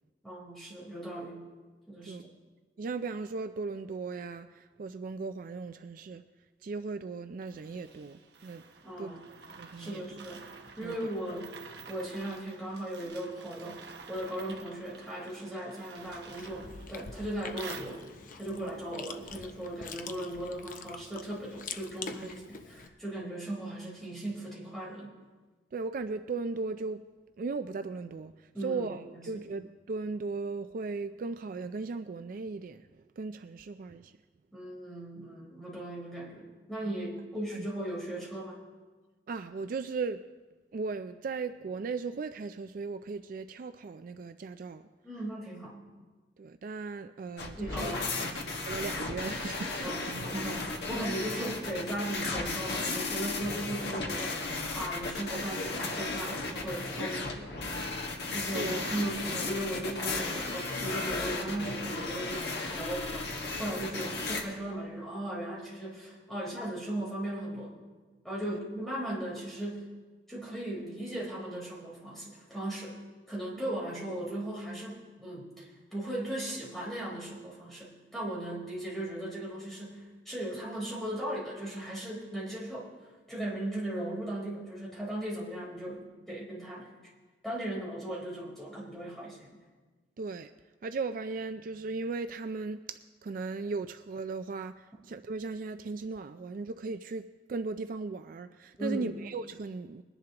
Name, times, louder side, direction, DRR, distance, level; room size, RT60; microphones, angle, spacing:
voice 1, 0.2-1.4 1.9-2.3 8.8-9.2 9.8-10.4 10.8-11.5 11.9-13.8 14.1-18.0 18.4-25.1 28.5-29.4 34.5-38.6 45.0-45.7 47.6-48.4 49.8-57.5 58.3-67.7 68.2-69.9 70.3-72.9 73.3-82.9 83.3-86.9 87.4-89.5 98.8-99.1, right 1 dB, ahead, 3.8 m, -37 dB
voice 2, 2.8-6.2 6.6-8.6 9.0-9.1 9.6-10.0 10.8-11.0 18.5-18.7 23.2-23.3 25.7-27.0 27.4-34.1 36.8-37.0 37.5-37.7 39.3-40.2 40.7-44.8 46.4-47.9 48.7-49.9 58.5-58.8 68.4-68.6 90.2-90.5 90.8-100.0, right 4 dB, 50° right, 0.4 m, -37 dB
sound 1, 7.4-18.4, right 5 dB, 70° right, 1.1 m, -50 dB
Chewing mastication, 16.0-22.9, left 5 dB, 50° left, 0.7 m, -45 dB
sound 2, 47.4-64.4, left 3 dB, 65° left, 1.5 m, -35 dB
21.5 x 11.0 x 2.9 m
head